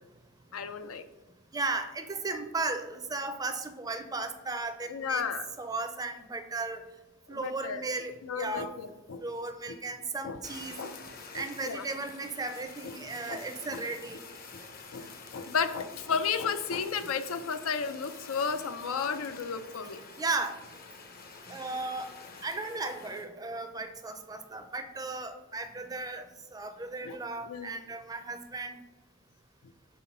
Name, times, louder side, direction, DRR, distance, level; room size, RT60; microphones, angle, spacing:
voice 1, 0.5-1.0 4.9-5.5 7.3-7.8 8.2-9.2 9.7-9.8 10.2-10.4 10.8-10.9 11.3-11.8 13.3-13.4 13.7-13.8 14.5-14.6 14.9-20.0 27.0-27.2 27.4-27.8, left 6 dB, 85° left, 10 dB, 0.5 m, -33 dB
voice 2, 1.5-5.3 5.6-6.8 7.3-8.7 9.2-10.8 11.3-14.2 20.2-20.6 21.5-22.1 22.4-26.3 26.5-28.8, right 3 dB, 20° right, 8 dB, 0.5 m, -35 dB
Fire, 10.4-23.3, left 4 dB, 45° left, 0.7 m, -48 dB
5.6 x 3.7 x 5.5 m, 1.0 s
head